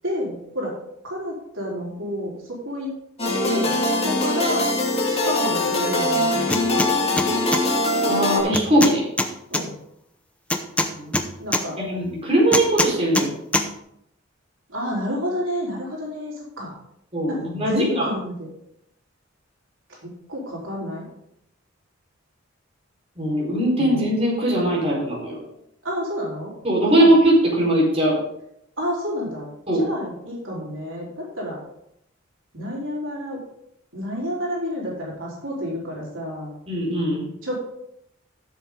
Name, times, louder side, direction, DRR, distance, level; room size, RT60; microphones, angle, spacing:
voice 1, 0.0-0.7 1.0-2.9 3.4-4.7 5.1-6.5 9.5-9.7 11.4-11.8 14.7-16.7 17.3-18.5 20.0-21.1 23.8-24.0 25.8-26.5 26.8-27.1 28.8-29.5 29.8-31.6 32.5-33.4 33.9-36.5 37.4-37.6, equal, 85° right, -4 dB, 4.0 m, -29 dB
sound 1, 3.2-8.4, left 1 dB, 35° left, 2.2 m, -22 dB
sound 2, 6.5-6.9 7.2-7.6 8.5-9.6 10.5-11.6 12.5-13.3 13.5-13.7, left 1 dB, 5° left, 0.8 m, -22 dB
voice 2, 8.1-9.1 10.9-11.1 11.8-13.3 17.1-18.1 23.2-25.4 26.6-28.2 29.7-29.8 36.7-37.3, right 1 dB, 30° right, -4 dB, 4.5 m, -20 dB
13.5 x 7.6 x 3.8 m, 0.76 s
head